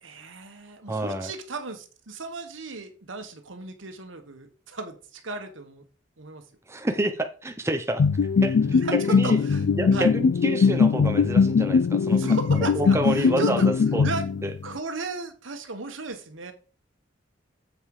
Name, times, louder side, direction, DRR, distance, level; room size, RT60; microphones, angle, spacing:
voice 1, 0.0-5.8 6.2-6.4 8.7-10.1 12.1-14.2 14.6-16.5, right 3 dB, 85° right, 1.5 m, -35 dB
voice 2, 0.9-1.3 6.7-8.1 8.4-8.6 9.1-9.4 9.8-12.2 12.6-13.6 13.9-14.0 14.4-14.5, right 1 dB, 15° right, 0.7 m, -28 dB
sound 1, 8.0-14.7, left 5 dB, 60° left, 0.4 m, -21 dB
7.7 x 5.2 x 4.9 m
head